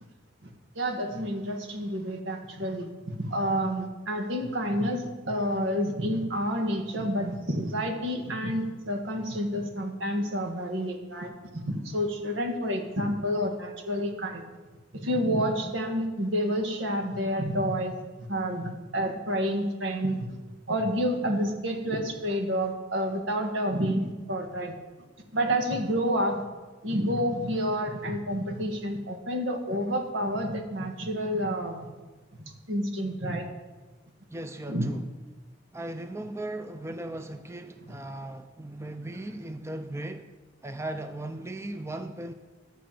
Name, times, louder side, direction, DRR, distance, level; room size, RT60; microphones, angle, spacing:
voice 1, 0.8-14.4 14.9-17.9 18.3-20.4 20.7-24.8 25.3-26.5 26.8-31.9 32.4-33.5 34.7-34.9 37.9-38.0, equal, 85° right, 4 dB, 1.8 m, -29 dB
voice 2, 34.3-35.0 35.7-40.3 40.6-42.3, right 1 dB, 15° right, 8 dB, 0.5 m, -37 dB
11.5 x 6.7 x 7.6 m, 1.2 s
head